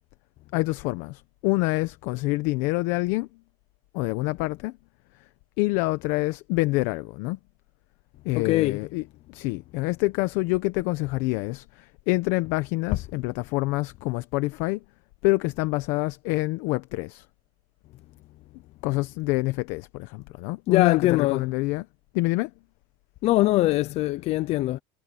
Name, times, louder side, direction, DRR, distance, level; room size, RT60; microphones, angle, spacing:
voice 1, 0.5-3.3 3.9-4.8 5.6-7.4 8.2-9.0 9.3-14.8 15.2-17.3 18.8-21.9 22.1-22.5, left 22 dB, 65° left, 1.0 m, -26 dB
voice 2, 8.3-8.8 20.7-21.5 23.2-24.8, left 17 dB, 45° left, 0.7 m, -22 dB
supercardioid pair, 135°, 14 cm